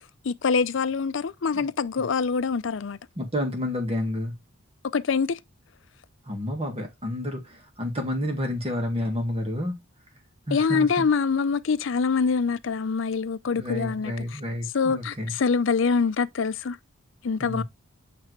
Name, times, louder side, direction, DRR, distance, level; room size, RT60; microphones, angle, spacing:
voice 1, 0.2-3.0 4.9-5.4 10.5-14.4 14.7-16.8 17.2-17.6, left 5 dB, 65° left, 0.5 m, -25 dB
voice 2, 3.2-4.4 6.3-9.8 10.5-11.0 13.5-15.3 17.4-17.6, left 1 dB, 30° right, 1.8 m, -30 dB
8.7 x 3.3 x 3.2 m
head